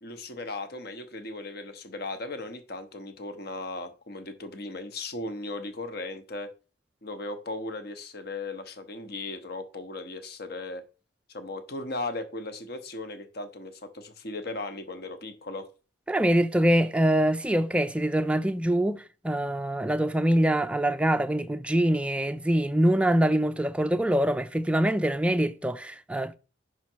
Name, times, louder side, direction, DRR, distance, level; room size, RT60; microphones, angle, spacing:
voice 1, 0.0-6.5 7.0-10.8 11.3-15.7, left 2 dB, 55° left, 1.0 m, -37 dB
voice 2, 16.1-26.3, right 1 dB, 5° right, 0.4 m, -24 dB
5.8 x 5.1 x 4.5 m
head